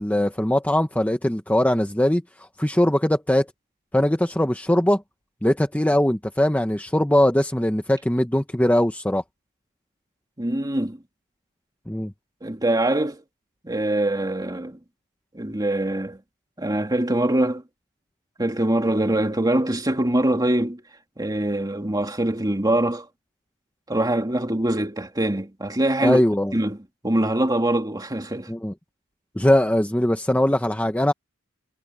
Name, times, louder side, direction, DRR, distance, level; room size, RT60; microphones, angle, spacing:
voice 1, 0.0-3.5 3.9-5.0 5.4-9.2 11.9-12.1 26.0-26.5 28.5-28.7 29.3-31.1, left 1 dB, 5° left, 1.1 m, -21 dB
voice 2, 10.4-11.0 12.4-13.2 13.6-14.8 15.3-16.2 16.6-17.6 18.4-20.8 21.2-23.1 23.9-26.2 26.5-26.8 27.0-28.5, right 1 dB, 15° right, 2.4 m, -23 dB
head